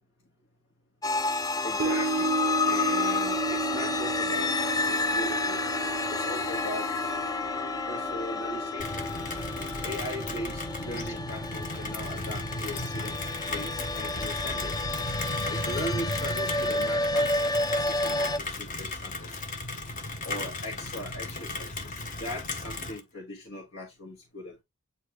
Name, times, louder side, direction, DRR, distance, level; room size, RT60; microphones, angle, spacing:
sound 1, 1.0-18.4, left 3 dB, 20° left, 0.4 m, -30 dB
voice 1, 1.6-5.6 6.1-6.9 7.9-9.1 9.8-14.7 15.5-19.4 20.2-24.6, equal, 70° left, 1.7 m, -39 dB
sound 2, 1.8-12.2 12.5-12.6, right 4 dB, 75° right, 0.5 m, -35 dB
Rain, 8.8-23.0, left 2 dB, 40° left, 1.1 m, -35 dB
8.4 x 4.1 x 3.2 m
head